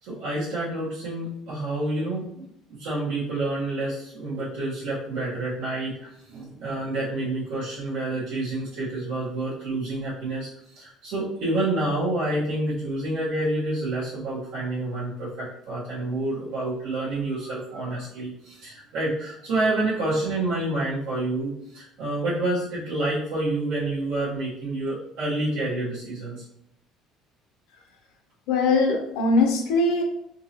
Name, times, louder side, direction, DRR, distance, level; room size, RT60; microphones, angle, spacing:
voice 1, 0.0-10.5 10.7-26.4, right 2 dB, 85° right, -11 dB, 1.3 m, -28 dB
voice 2, 28.5-30.0, left 3 dB, 75° left, 3 dB, 0.7 m, -21 dB
3.7 x 2.8 x 2.8 m, 0.76 s
cardioid pair, 170°, 0 cm